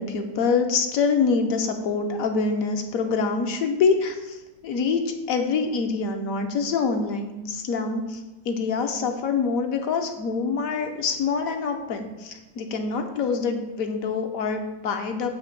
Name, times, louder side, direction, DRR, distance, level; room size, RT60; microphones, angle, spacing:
voice 1, 0.0-15.4, left 5 dB, 65° left, 5 dB, 1.1 m, -25 dB
7.8 x 3.1 x 5.9 m, 1.1 s
omnidirectional pair, 1.7 m